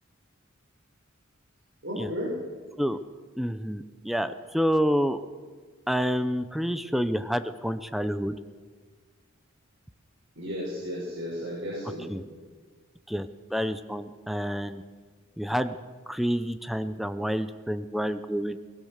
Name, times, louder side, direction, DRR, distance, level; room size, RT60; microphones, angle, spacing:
voice 1, 1.8-2.3 10.4-12.2, equal, 65° right, -5 dB, 6.0 m, -34 dB
voice 2, 3.4-5.2 5.9-8.3 12.1-12.2 13.1-14.8 15.4-15.8 16.1-18.6, equal, ahead, 11 dB, 0.6 m, -28 dB
22.5 x 20.0 x 6.6 m, 1.5 s
head